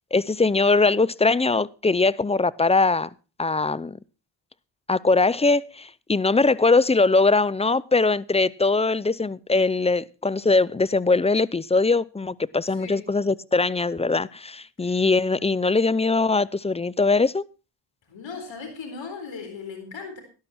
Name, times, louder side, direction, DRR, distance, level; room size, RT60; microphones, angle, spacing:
voice 1, 0.1-3.1 3.4-4.0 4.9-17.4, left 3 dB, 15° left, 0.5 m, -21 dB
voice 2, 12.7-13.1 14.8-15.0 18.1-20.2, left 5 dB, 65° left, 4.1 m, -38 dB
13.0 x 11.5 x 4.3 m
supercardioid pair, 50°, 48 cm